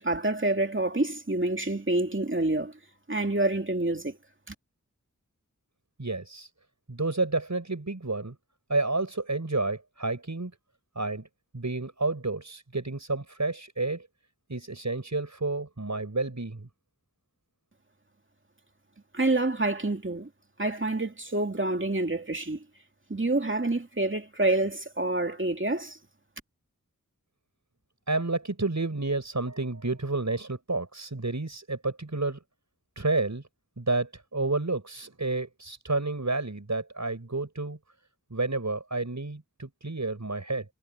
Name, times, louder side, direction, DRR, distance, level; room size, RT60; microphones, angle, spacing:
voice 1, 0.0-2.7 3.1-4.2 4.5-4.6 19.1-20.3 20.6-22.6 23.1-26.0, right 2 dB, 40° right, 2.6 m, -27 dB
voice 2, 6.0-6.5 6.9-8.4 8.7-10.5 10.9-11.3 11.5-14.1 14.5-16.7 28.1-32.4 32.9-33.4 33.8-37.8 38.3-40.7, right 3 dB, 60° right, 6.8 m, -30 dB
wide cardioid pair, 55°, 32 cm